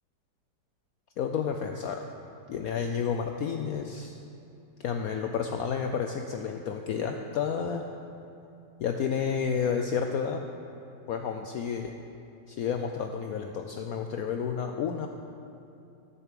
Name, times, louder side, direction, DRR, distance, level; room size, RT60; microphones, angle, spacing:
voice 1, 1.2-2.1 2.5-4.2 4.8-7.8 8.8-10.5 11.1-11.9 12.5-15.1, left 7 dB, 70° left, 4 dB, 0.9 m, -31 dB
10.5 x 6.8 x 7.5 m, 2.8 s
omnidirectional pair, 1.9 m